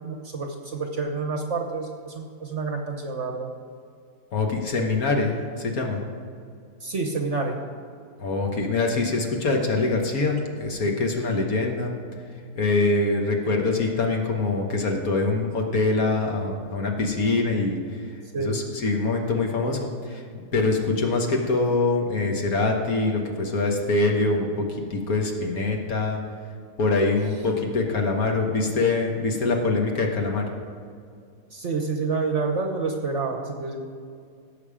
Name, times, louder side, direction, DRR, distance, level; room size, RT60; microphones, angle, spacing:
voice 1, 0.0-3.5 6.8-7.6 18.3-18.6 31.5-33.8, right 4 dB, 50° right, 3 dB, 1.1 m, -28 dB
voice 2, 4.3-6.0 8.2-11.9 12.5-18.0 18.4-24.6 24.9-26.2 26.8-30.5, left 3 dB, 55° left, 2 dB, 1.6 m, -24 dB
17.0 x 7.0 x 5.0 m, 2.3 s
omnidirectional pair, 1.9 m